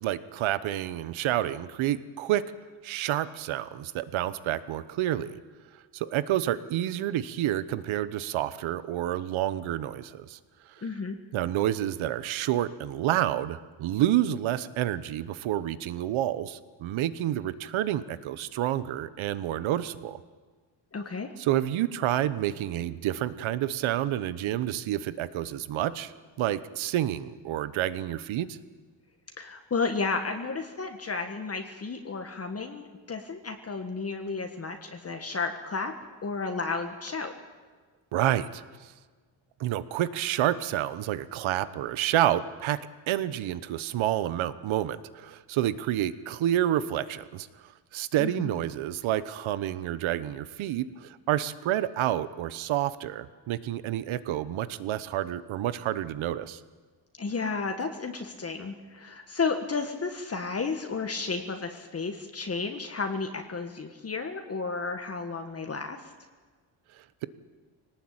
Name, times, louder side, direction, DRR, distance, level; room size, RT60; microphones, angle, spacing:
voice 1, 0.0-2.4 2.8-5.4 5.9-10.4 10.7-10.8 11.3-20.2 21.4-26.1 26.4-28.6 38.1-38.9 39.6-42.8 43.1-56.6, right 12 dB, 85° right, 15 dB, 1.2 m, -29 dB
voice 2, 10.8-11.2 20.9-21.3 29.4-37.3 48.2-48.5 57.2-66.1, left 4 dB, 30° left, 5 dB, 1.8 m, -32 dB
22.5 x 19.0 x 8.9 m, 1.4 s
cardioid pair, 115°, 46 cm